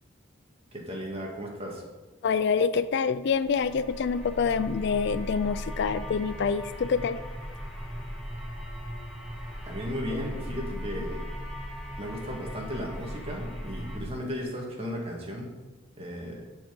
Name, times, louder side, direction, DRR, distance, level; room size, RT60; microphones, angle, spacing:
voice 1, 0.7-1.8 9.7-11.4 12.0-15.5 16.0-16.4, equal, 30° right, -1 dB, 2.2 m, -35 dB
voice 2, 2.2-7.2, left 6 dB, 60° left, 14 dB, 0.4 m, -26 dB
sound 1, 3.3-14.0, equal, ahead, 1.7 m, -38 dB
12.0 x 5.5 x 5.4 m, 1.2 s
head